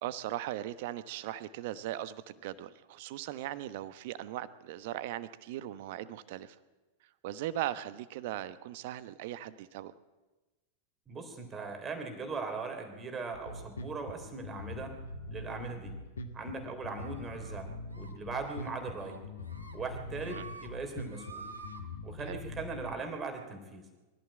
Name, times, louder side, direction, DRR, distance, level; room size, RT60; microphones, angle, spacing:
voice 1, 0.0-6.6 7.2-9.9 20.3-20.4 22.2-22.4, right 13 dB, 50° right, 14 dB, 1.1 m, -39 dB
voice 2, 11.1-15.0 15.3-16.0 16.3-19.2 19.7-21.5 22.0-23.8, right 4 dB, 20° right, 5 dB, 3.6 m, -39 dB
Bass guitar, 13.3-22.9, left 2 dB, 70° left, 2.0 m, -43 dB
sound 1, 17.0-17.6 17.9-18.1 18.4-18.7 19.0-19.7 20.1-20.7 21.0-21.8, right 3 dB, 80° right, 3.0 m, -49 dB
22.5 x 14.5 x 8.9 m, 1.2 s
figure-of-eight pair, 90°, 0 cm